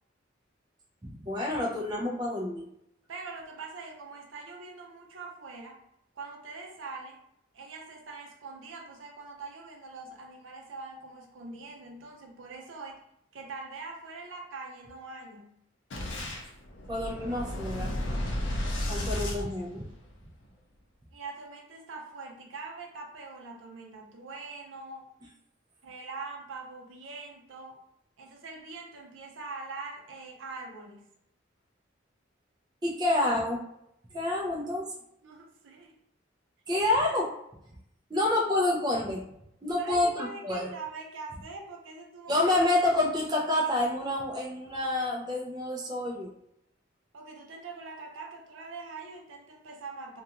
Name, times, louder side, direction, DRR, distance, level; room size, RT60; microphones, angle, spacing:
voice 1, 1.1-2.7 16.9-17.9 18.9-19.9 32.8-33.6 34.1-34.9 36.7-37.3 38.1-39.2 39.6-40.7 42.3-46.3, left 2 dB, 20° right, -3 dB, 0.5 m, -28 dB
voice 2, 3.1-5.8 6.1-7.2 7.5-13.0 13.3-15.5 21.1-25.1 25.8-27.8 28.2-31.1 35.2-36.0 38.2-38.3 39.8-42.5 47.1-50.2, right 4 dB, 75° right, 1 dB, 0.5 m, -43 dB
Boom, 15.9-20.3, left 1 dB, 65° left, 0.5 m, -33 dB
2.5 x 2.2 x 2.8 m, 0.77 s
head